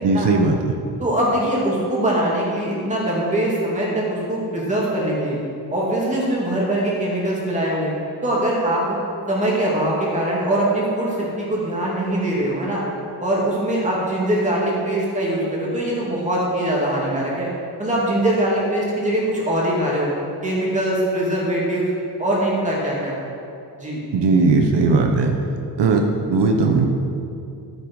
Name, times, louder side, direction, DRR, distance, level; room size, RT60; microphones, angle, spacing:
voice 1, 0.0-0.8 24.1-25.3 25.8-26.9, right 3 dB, 80° right, 3 dB, 1.1 m, -18 dB
voice 2, 1.0-5.4 5.7-7.9 8.2-9.0 9.3-12.8 13.2-17.5 17.8-20.1 20.4-21.9 22.2-23.1 23.8-24.0, right 1 dB, 15° right, -5 dB, 2.8 m, -22 dB
12.5 x 9.0 x 4.8 m, 2.6 s
wide cardioid pair, 170°, 41 cm